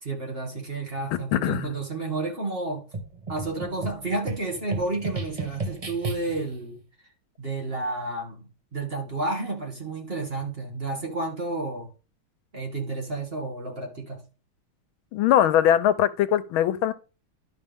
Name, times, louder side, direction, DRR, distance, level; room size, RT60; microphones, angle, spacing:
voice 1, 0.0-2.9 3.3-6.8 7.4-11.9 12.5-14.2, right 2 dB, 30° right, 2.4 m, -31 dB
voice 2, 1.3-1.7 15.1-16.9, left 11 dB, 85° left, 1.5 m, -21 dB
sound 1, 2.9-6.6, right 3 dB, 55° right, 0.4 m, -34 dB
11.5 x 5.6 x 3.6 m
omnidirectional pair, 2.2 m